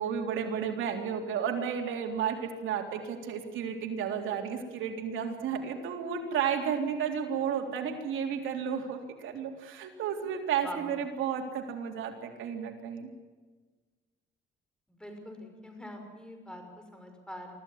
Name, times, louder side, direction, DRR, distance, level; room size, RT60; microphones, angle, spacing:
voice 1, 0.0-13.1, right 7 dB, 85° right, 3 dB, 3.7 m, -32 dB
voice 2, 14.9-17.5, left 1 dB, 5° left, 4 dB, 6.1 m, -44 dB
24.5 x 15.0 x 9.7 m, 1.4 s
cardioid pair, 90°, 20 cm